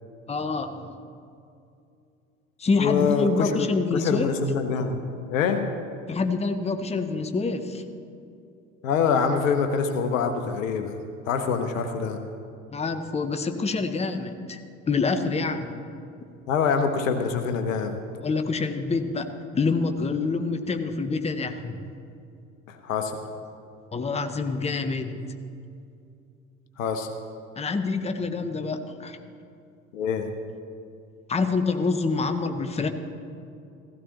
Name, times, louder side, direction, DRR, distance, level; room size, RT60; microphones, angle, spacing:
voice 1, 0.3-0.9 2.6-4.3 6.1-7.8 12.7-15.7 18.2-21.8 23.9-25.2 27.6-29.2 31.3-32.9, left 4 dB, 15° left, 8 dB, 0.9 m, -26 dB
voice 2, 2.8-5.0 5.3-5.7 8.8-10.9 11.3-12.2 16.5-18.0 22.7-23.2 26.8-27.1 29.9-30.3, left 5 dB, 70° left, 7 dB, 0.9 m, -25 dB
16.5 x 15.5 x 3.0 m, 2.5 s
figure-of-eight pair, 60°, 41 cm